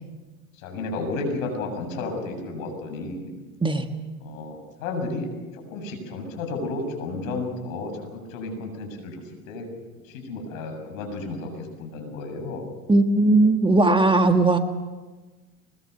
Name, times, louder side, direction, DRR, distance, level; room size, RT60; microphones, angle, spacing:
voice 1, 0.6-3.3 4.2-5.3 5.5-9.2 9.5-9.7 10.1-12.7, left 3 dB, 70° left, 3 dB, 7.3 m, -32 dB
voice 2, 12.9-14.6, right 2 dB, 10° right, 7 dB, 1.6 m, -18 dB
24.0 x 21.0 x 6.9 m, 1.2 s
hypercardioid pair, 85°, 41 cm